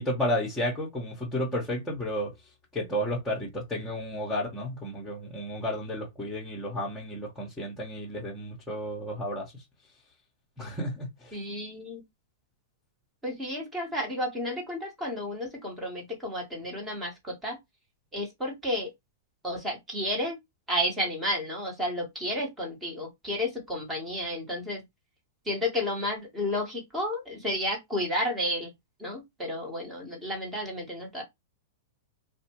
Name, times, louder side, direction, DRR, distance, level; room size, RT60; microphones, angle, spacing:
voice 1, 0.0-2.3 2.7-9.5 10.6-11.4, equal, 5° left, 1.1 m, -32 dB
voice 2, 11.3-12.0 13.2-17.6 18.1-18.9 19.4-20.4 20.7-24.8 25.4-28.7 29.0-31.2, left 1 dB, 15° right, 1.3 m, -32 dB
2.6 x 2.2 x 2.9 m
hypercardioid pair, 120°, 0 cm